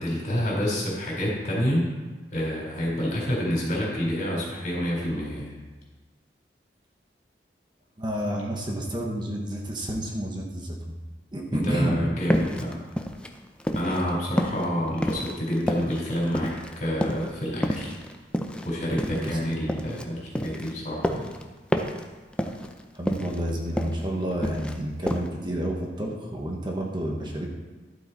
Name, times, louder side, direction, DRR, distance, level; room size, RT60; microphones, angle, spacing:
voice 1, 0.0-1.9 2.3-5.5 11.5-12.8 13.7-17.9 18.7-21.3, equal, 45° left, -4 dB, 4.0 m, -28 dB
voice 2, 8.0-10.9 11.3-12.0 19.1-19.3 22.9-27.5, right 1 dB, 25° right, -1 dB, 1.3 m, -30 dB
sound 1, 12.3-14.1 14.4-16.7 17.0-17.3 17.6-20.0 20.4-21.4 21.7-22.1 22.3-22.8 23.1-24.0 24.3-24.8 25.1-25.3, equal, 5° left, 0.6 m, -29 dB
12.0 x 7.9 x 4.2 m, 1.3 s
head